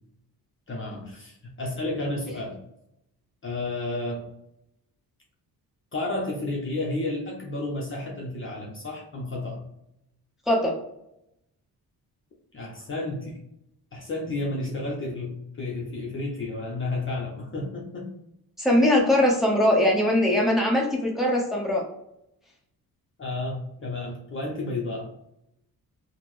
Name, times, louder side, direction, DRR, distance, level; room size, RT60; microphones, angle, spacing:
voice 1, 0.7-2.6 3.4-4.3 5.9-9.6 12.5-13.4 13.9-18.1 23.2-25.1, left 2 dB, 35° left, -2 dB, 0.7 m, -31 dB
voice 2, 18.6-21.9, left 1 dB, ahead, -3 dB, 0.9 m, -21 dB
3.5 x 2.1 x 3.0 m, 0.81 s
cardioid pair, 95°, 37 cm